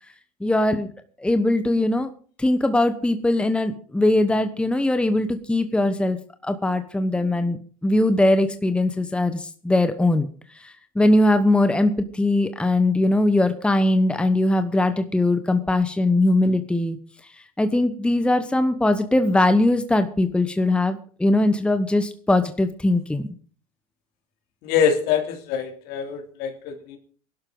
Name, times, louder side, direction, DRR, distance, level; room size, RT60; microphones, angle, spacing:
voice 1, 0.4-0.9 1.2-2.1 2.4-6.2 6.4-10.3 10.6-17.0 17.6-23.3, left 1 dB, 5° left, 9 dB, 1.2 m, -21 dB
voice 2, 24.6-27.0, left 7 dB, 60° left, 4 dB, 3.1 m, -24 dB
19.5 x 12.0 x 3.9 m, 0.43 s
hypercardioid pair, 95°, 18 cm